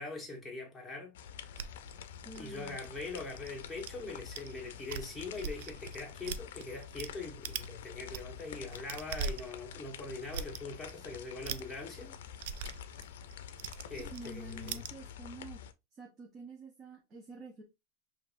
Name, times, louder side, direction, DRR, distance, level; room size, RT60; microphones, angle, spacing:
voice 1, 0.0-1.8 2.4-12.2 13.9-14.9, left 3 dB, 5° left, 1.2 m, -42 dB
sound 1, 1.1-15.7, left 8 dB, 85° left, 0.4 m, -48 dB
sound 2, 1.6-3.9 4.4-4.5 4.8-7.1 7.4-7.7 8.0-14.9, right 6 dB, 70° right, 0.4 m, -41 dB
voice 2, 2.2-2.8 14.0-15.6 15.9-17.6, right 2 dB, 30° right, 0.8 m, -48 dB
5.1 x 2.6 x 2.5 m
supercardioid pair, 155°, 0 cm